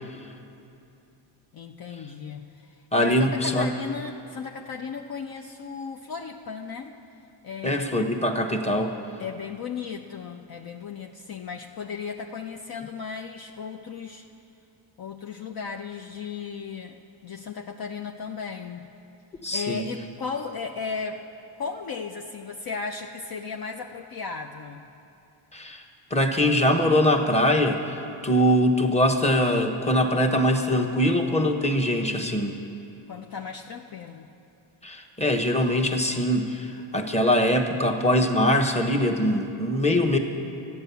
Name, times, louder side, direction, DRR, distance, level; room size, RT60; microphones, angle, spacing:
voice 1, 1.5-6.9 7.4-8.1 9.2-14.3 15.0-18.8 19.5-21.2 21.6-24.9 33.1-34.3, left 5 dB, 45° left, 3 dB, 0.6 m, -35 dB
voice 2, 2.9-3.7 7.6-9.0 19.4-19.9 25.5-25.8 26.1-32.6 34.8-40.2, equal, 15° left, 3 dB, 1.1 m, -22 dB
12.5 x 9.4 x 6.9 m, 2.7 s
cardioid pair, 75°, 50 cm